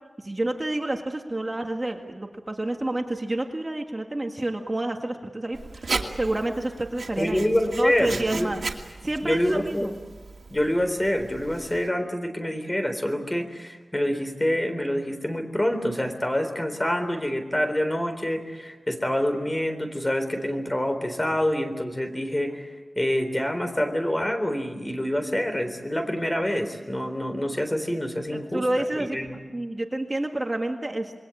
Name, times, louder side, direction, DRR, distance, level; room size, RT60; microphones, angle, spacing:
voice 1, 0.2-7.4 7.8-8.6 9.0-10.0 28.3-29.2 29.5-31.1, right 1 dB, 30° right, 3 dB, 1.9 m, -29 dB
Writing, 5.5-11.9, right 3 dB, 80° right, 2.4 m, -36 dB
voice 2, 7.2-8.5 9.2-9.9 10.5-22.7 23.0-29.4, left 1 dB, 20° left, 7 dB, 3.8 m, -26 dB
27.0 x 22.0 x 8.6 m, 1.3 s
wide cardioid pair, 90°, 0 cm